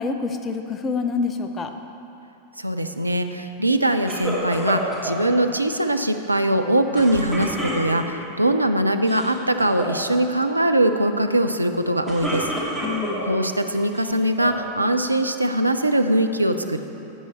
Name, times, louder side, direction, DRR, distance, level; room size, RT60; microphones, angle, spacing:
voice 1, 0.0-1.7 12.8-13.3, left 4 dB, 25° left, 7 dB, 0.6 m, -27 dB
voice 2, 2.6-12.5 13.3-16.8, right 1 dB, 85° right, 7 dB, 0.4 m, -21 dB
sound 1, 4.1-5.2 6.9-8.2 8.9-9.3 9.6-10.0 11.8-13.3 13.9-14.7, equal, ahead, 2.2 m, -29 dB
11.5 x 8.2 x 4.2 m, 2.9 s
figure-of-eight pair, 90°, 0 cm